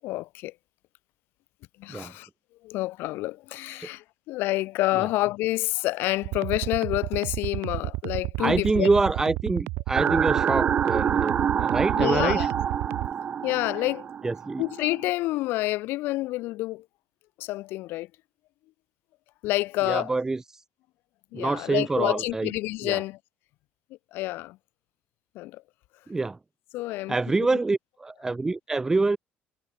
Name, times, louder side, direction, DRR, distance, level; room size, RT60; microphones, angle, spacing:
voice 1, 0.0-0.5 1.8-2.3 2.6-8.9 12.0-12.5 13.4-14.1 14.6-16.8 17.4-18.1 19.4-20.1 21.3-23.2 24.1-24.6 25.3-25.6 26.7-27.2, left 18 dB, 75° left, 4.6 m, -28 dB
sound 1, 6.2-13.1, right 22 dB, 85° right, 4.6 m, -31 dB
voice 2, 8.4-12.5 14.2-14.6 19.9-20.6 21.3-22.5 22.8-23.0 26.1-26.4 27.1-29.2, right 3 dB, 15° right, 1.2 m, -26 dB
sound 2, 9.9-15.1, right 8 dB, 35° right, 2.4 m, -27 dB
cardioid pair, 135°, 4 cm